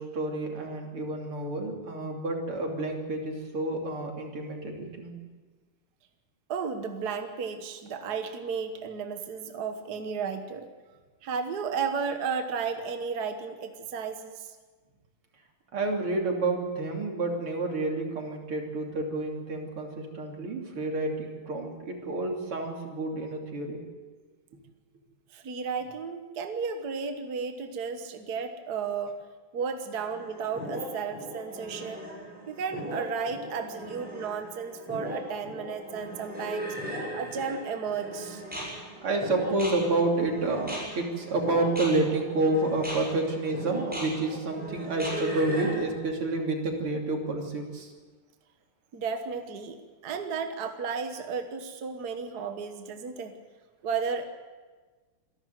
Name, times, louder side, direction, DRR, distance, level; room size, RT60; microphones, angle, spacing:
voice 1, 0.0-5.1 15.7-23.8 37.1-37.2 39.0-47.9, right 2 dB, 85° right, 1 dB, 3.9 m, -29 dB
voice 2, 6.5-10.7 11.2-14.6 25.3-29.3 29.5-32.1 32.5-36.8 37.1-38.4 48.9-49.8 50.0-53.4 53.8-54.2, right 6 dB, 50° right, 7 dB, 1.7 m, -33 dB
sound 1, 29.9-45.8, right 1 dB, 5° right, 6.8 m, -38 dB
26.5 x 12.0 x 9.3 m, 1.4 s
omnidirectional pair, 2.4 m